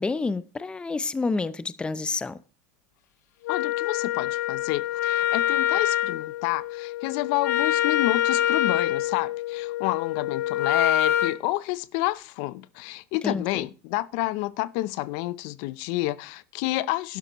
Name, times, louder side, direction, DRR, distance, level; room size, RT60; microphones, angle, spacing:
voice 1, 0.0-2.4 13.2-13.7, left 3 dB, 10° left, 0.5 m, -29 dB
Wind instrument woodwind instrument, 3.4-11.4, left 12 dB, 85° left, 0.9 m, -25 dB
voice 2, 3.5-17.2, left 18 dB, 60° left, 0.5 m, -29 dB
12.0 x 11.0 x 3.0 m
supercardioid pair, 125°, 9 cm